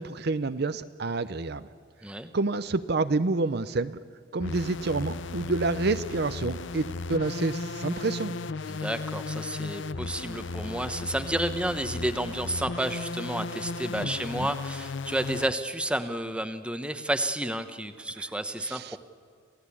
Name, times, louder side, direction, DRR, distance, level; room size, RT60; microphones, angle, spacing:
voice 1, 0.0-1.7 2.3-4.0 4.3-8.4 14.0-14.1 14.4-14.5 18.6-19.0, right 3 dB, 55° right, 12 dB, 0.7 m, -28 dB
sound 1, 4.4-15.5, left 3 dB, 70° left, 0.6 m, -35 dB
voice 2, 8.7-19.0, right 1 dB, 5° right, 9 dB, 1.0 m, -31 dB
27.0 x 16.5 x 8.5 m, 2.1 s
head